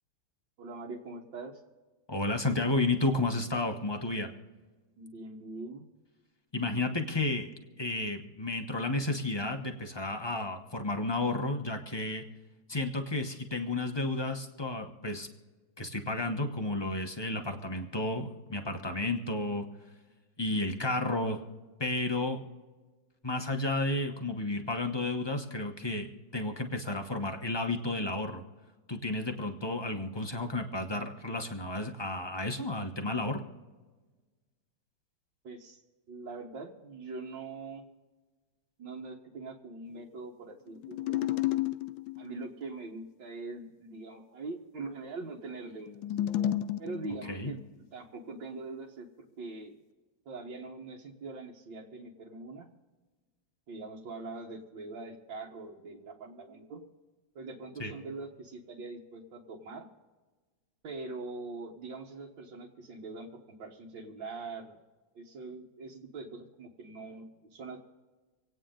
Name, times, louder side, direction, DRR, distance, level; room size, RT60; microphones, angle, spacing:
voice 1, 0.6-1.6 5.0-5.9 35.4-35.8 36.1-37.9 38.8-41.2 42.2-46.0 46.8-47.6 47.9-49.1 49.4-49.7 50.3-52.7 53.7-56.9 57.4-59.9 60.8-64.8 65.2-67.8, right 3 dB, 65° right, -3 dB, 2.0 m, -43 dB
voice 2, 2.1-4.3 6.5-7.5 7.8-12.2 12.7-15.3 15.8-19.7 20.4-21.4 21.8-22.4 23.2-28.4 28.9-33.4 47.3-47.5 57.8-57.9, left 2 dB, 40° left, 4 dB, 0.3 m, -32 dB
sound 1, 40.8-42.3 45.9-47.7, left 12 dB, 75° left, 1.2 m, -32 dB
27.0 x 9.2 x 3.8 m, 1.3 s
omnidirectional pair, 2.3 m